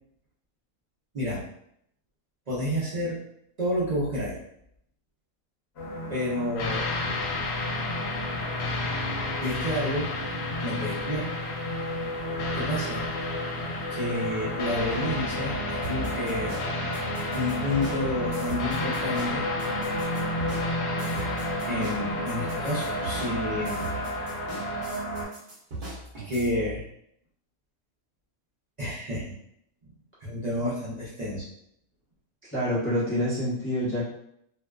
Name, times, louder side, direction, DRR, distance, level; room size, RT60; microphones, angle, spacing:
voice 1, 2.5-3.2 3.6-4.4 6.1-6.9 9.4-10.1 10.6-11.3 12.5-13.0 13.9-16.6 17.3-19.4 21.7-23.9 25.8-26.8 28.8-29.3 30.2-31.5, left 1 dB, 70° right, -8 dB, 0.4 m, -30 dB
sound 1, 5.8-25.3, equal, 50° left, 0.9 m, -33 dB
sound 2, 6.6-24.9, left 3 dB, 80° left, 1.0 m, -34 dB
sound 3, 15.8-26.5, right 2 dB, 45° right, 0.8 m, -40 dB
voice 2, 32.4-34.1, equal, 15° left, -9 dB, 0.4 m, -27 dB
2.5 x 2.2 x 2.2 m, 0.73 s
omnidirectional pair, 1.5 m